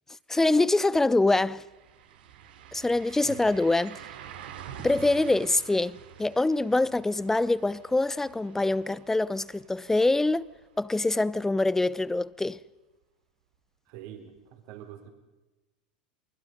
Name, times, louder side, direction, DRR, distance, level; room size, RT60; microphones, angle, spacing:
voice 1, 0.3-1.6 2.7-4.0 4.8-10.4 10.8-12.6, left 2 dB, 10° left, 0.6 m, -24 dB
sound 1, 0.9-1.0 1.3-11.1 11.5-11.6 14.4-14.5, right 9 dB, 75° right, 2.8 m, -47 dB
voice 2, 13.9-15.1, right 10 dB, 60° right, 3.9 m, -45 dB
28.5 x 20.5 x 5.3 m
hypercardioid pair, 105°, 5 cm